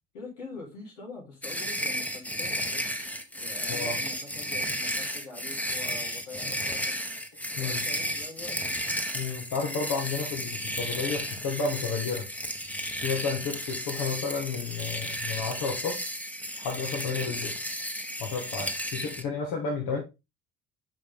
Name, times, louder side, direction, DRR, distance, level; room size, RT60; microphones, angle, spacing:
voice 1, 0.1-2.9 3.3-6.9 7.5-8.6, left 3 dB, 85° left, -2 dB, 3.7 m, -44 dB
sound 1, 1.4-19.2, equal, 5° left, 1.1 m, -33 dB
voice 2, 9.1-12.3 13.0-16.0 16.6-17.6 18.2-20.0, left 5 dB, 60° left, 0 dB, 1.8 m, -31 dB
6.1 x 5.3 x 3.7 m, 0.25 s
hypercardioid pair, 65°, 36 cm